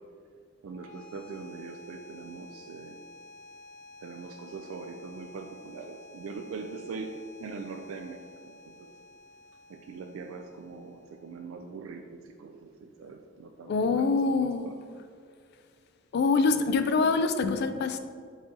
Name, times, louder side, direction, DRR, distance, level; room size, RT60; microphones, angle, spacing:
sound 1, 0.6-11.6, left 2 dB, 35° left, 1.5 m, -52 dB
voice 1, 0.6-3.0 4.0-7.1 7.4-8.2 8.4-8.9 9.7-14.3 14.6-14.7, right 4 dB, 75° right, 4 dB, 0.3 m, -42 dB
voice 2, 13.7-14.8 16.1-18.0, left 4 dB, 55° left, 10 dB, 0.3 m, -25 dB
4.7 x 3.8 x 2.7 m, 2.2 s
head